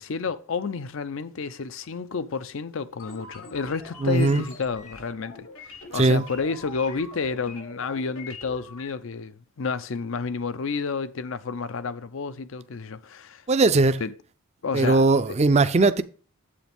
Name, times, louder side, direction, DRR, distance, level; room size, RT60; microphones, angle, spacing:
voice 1, 0.0-13.4 14.0-14.1 14.6-15.0, left 5 dB, 65° left, 0.5 m, -30 dB
sound 1, 3.0-8.9, left 3 dB, 85° left, 1.7 m, -43 dB
voice 2, 4.0-4.5 5.9-6.2 13.5-14.0 14.7-16.0, right 3 dB, 30° right, 0.4 m, -19 dB
8.5 x 8.0 x 3.5 m
head